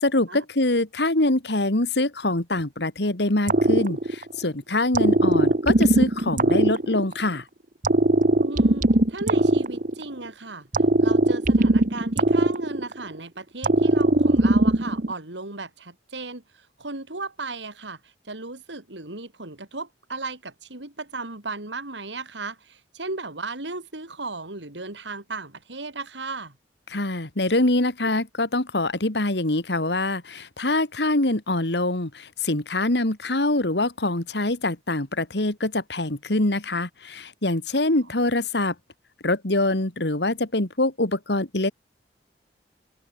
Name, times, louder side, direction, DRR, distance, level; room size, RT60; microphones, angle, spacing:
voice 1, 0.0-7.4 26.9-38.7 39.2-41.7, left 2 dB, 65° left, 2.4 m, -24 dB
sound 1, 3.5-4.5 4.9-7.4 7.8-10.3 10.7-13.2 13.6-15.1, right 1 dB, 45° right, 1.2 m, -20 dB
voice 2, 8.4-26.6, right 3 dB, 85° right, 3.8 m, -36 dB
head